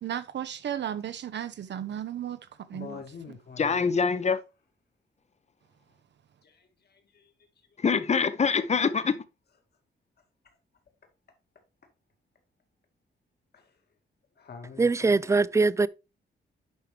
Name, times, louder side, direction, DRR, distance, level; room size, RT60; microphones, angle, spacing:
voice 1, 0.0-3.0, right 10 dB, 70° right, 0.7 m, -35 dB
voice 2, 2.7-4.2 6.4-7.3 13.5-13.7 14.4-15.3, left 6 dB, 55° left, 2.0 m, -46 dB
voice 3, 3.6-4.4 7.8-9.2, left 5 dB, 35° left, 0.7 m, -24 dB
voice 4, 14.8-15.9, right 3 dB, 15° right, 0.3 m, -22 dB
10.5 x 4.6 x 3.3 m
cardioid pair, 110°, 19 cm